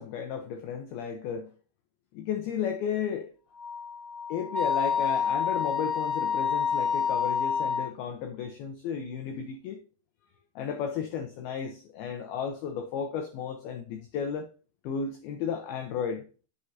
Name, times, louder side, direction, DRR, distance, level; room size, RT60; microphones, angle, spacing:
voice 1, 0.0-1.5 2.1-3.3 4.3-9.8 10.6-14.5 14.8-16.3, left 7 dB, 85° left, 2.1 m, -33 dB
Wind instrument woodwind instrument, 3.6-7.9, left 6 dB, 10° right, 2.2 m, -28 dB
8.0 x 7.1 x 2.7 m
omnidirectional pair, 5.5 m